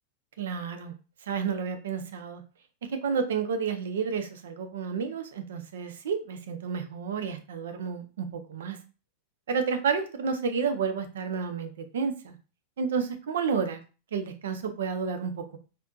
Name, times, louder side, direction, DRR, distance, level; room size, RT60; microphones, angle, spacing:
voice 1, 0.4-0.9 1.3-2.4 3.0-8.8 9.5-12.4 12.8-13.8 14.1-15.6, right 6 dB, 60° right, 7 dB, 0.5 m, -30 dB
4.3 x 2.6 x 2.3 m, 0.34 s
figure-of-eight pair, 90°, 0 cm